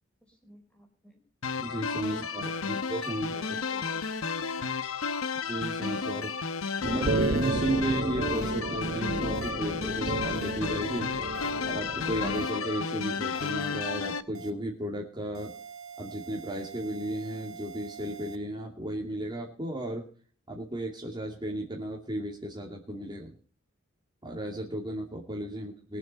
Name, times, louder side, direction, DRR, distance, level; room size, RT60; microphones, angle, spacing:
voice 1, 0.2-1.2 2.5-2.7 3.1-4.1 6.1-6.2, equal, 5° left, 3 dB, 4.2 m, -53 dB
sound 1, 1.4-14.2, left 5 dB, 85° left, 1.0 m, -32 dB
voice 2, 1.6-3.3 4.0-4.1 5.4-6.3 6.8-11.1 11.7-15.5 16.0-20.0 20.5-23.4 24.2-26.0, right 1 dB, 20° right, -1 dB, 2.6 m, -34 dB
sound 2, 6.8-12.5, right 3 dB, 40° right, 0.5 m, -32 dB
sound 3, 7.3-7.5 8.3-8.5 9.3-9.5 10.3-10.5 11.3-11.5 12.3-12.5 13.3-13.5 14.3-14.5 15.3-18.4, right 6 dB, 85° right, 1.6 m, -45 dB
22.5 x 7.6 x 5.6 m, 0.43 s
head